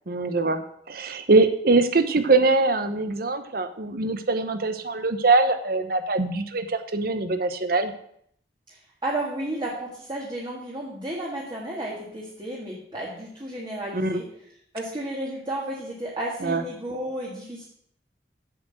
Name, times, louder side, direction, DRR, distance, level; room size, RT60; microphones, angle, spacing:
voice 1, 0.1-0.6 0.9-7.9 13.9-14.1 16.4-16.6, right 3 dB, 55° right, 9 dB, 1.0 m, -22 dB
voice 2, 8.7-14.3 14.7-17.6, right 1 dB, 25° right, -4 dB, 1.8 m, -32 dB
7.9 x 6.4 x 7.8 m, 0.68 s
head